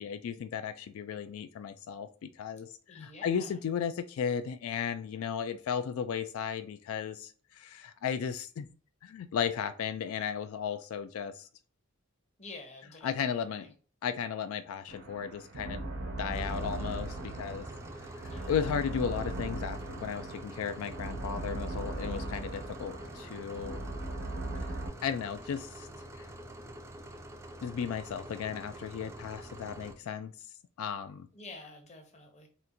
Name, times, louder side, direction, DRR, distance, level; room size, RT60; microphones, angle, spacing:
voice 1, 0.0-8.7 9.0-11.5 13.0-13.7 14.0-15.9 16.2-17.7 18.0-23.8 25.0-25.9 26.2-26.3 27.6-30.3 30.8-31.3, left 7 dB, 90° left, 10 dB, 0.3 m, -35 dB
voice 2, 2.9-3.6 12.4-13.7 18.3-18.8 31.3-32.5, left 2 dB, 35° left, 2 dB, 0.8 m, -49 dB
sound 1, 14.9-24.9, right 2 dB, 85° right, 0.7 m, -39 dB
sound 2, 16.3-30.0, right 1 dB, 15° right, 0.3 m, -46 dB
4.2 x 2.5 x 2.6 m, 0.40 s
head